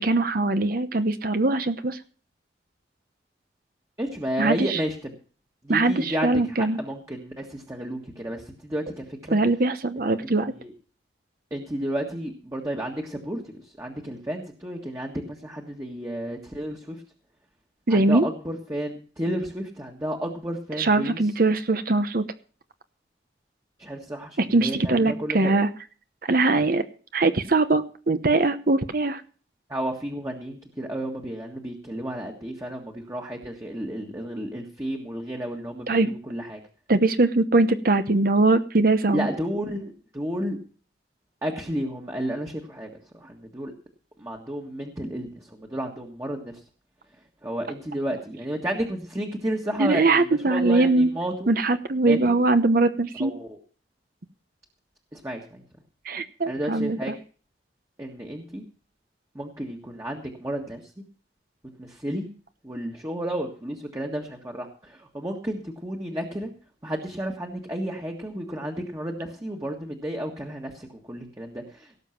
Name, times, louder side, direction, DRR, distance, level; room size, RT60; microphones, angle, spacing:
voice 1, 0.0-2.0 4.4-4.8 5.7-6.8 9.3-10.5 17.9-18.2 20.8-22.2 24.4-25.7 26.3-26.8 27.1-29.2 35.9-36.1 36.9-39.3 49.8-51.1 51.5-53.3 56.0-57.1, right 2 dB, 55° right, 10 dB, 0.9 m, -21 dB
voice 2, 4.0-5.1 5.6-9.4 10.6-10.7 11.5-17.0 17.9-21.2 23.8-25.6 29.7-36.6 39.1-40.6 41.4-43.7 44.2-46.5 47.4-51.5 52.0-52.4 53.2-53.6 55.1-55.6 56.5-57.1 58.0-58.6 59.3-60.8 61.8-62.3 62.6-66.5 66.8-72.0, right 1 dB, 20° right, 1 dB, 1.6 m, -32 dB
17.5 x 7.3 x 5.9 m, 0.40 s
head